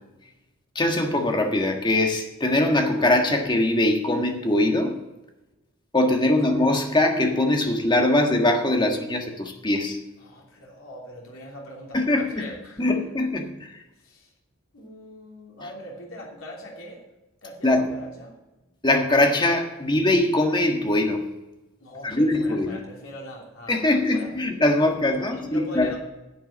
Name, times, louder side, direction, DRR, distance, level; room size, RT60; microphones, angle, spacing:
voice 1, 0.7-5.0 5.9-10.0 11.9-12.5 12.8-13.8 17.6-18.0 18.8-21.2 22.0-22.8 23.7-25.9, left 1 dB, 20° left, 3 dB, 1.5 m, -22 dB
voice 2, 10.2-12.9 14.0-14.3 14.7-17.0 17.4-18.3 21.8-24.3 24.7-26.0, equal, 85° left, -2 dB, 3.1 m, -41 dB
10.5 x 8.2 x 7.2 m, 1.1 s
head